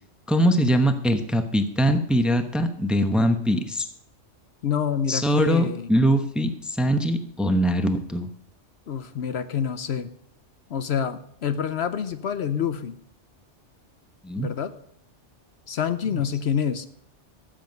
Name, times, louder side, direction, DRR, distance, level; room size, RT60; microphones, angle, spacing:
voice 1, 0.3-3.9 5.1-8.3 14.2-14.5 16.1-16.2, equal, ahead, 7 dB, 0.8 m, -22 dB
voice 2, 4.6-5.9 8.9-10.1 10.7-13.0 14.4-14.7 15.7-16.9, left 8 dB, 65° left, 11 dB, 0.9 m, -27 dB
14.0 x 7.8 x 5.3 m, 0.70 s
omnidirectional pair, 1.2 m